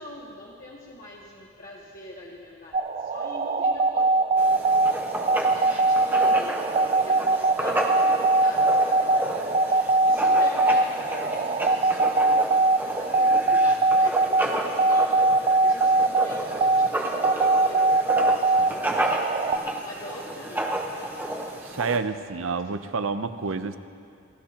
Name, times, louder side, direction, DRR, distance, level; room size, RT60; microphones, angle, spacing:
voice 1, 0.0-19.1 19.7-20.8, left 1 dB, 40° left, -4 dB, 1.2 m, -42 dB
sound 1, 2.7-19.6, right 2 dB, 30° right, 0.3 m, -22 dB
Writing, 4.4-22.0, right 1 dB, 10° right, 1.0 m, -31 dB
voice 2, 21.6-23.8, right 4 dB, 75° right, 11 dB, 0.6 m, -29 dB
28.0 x 13.0 x 2.9 m, 2.4 s
head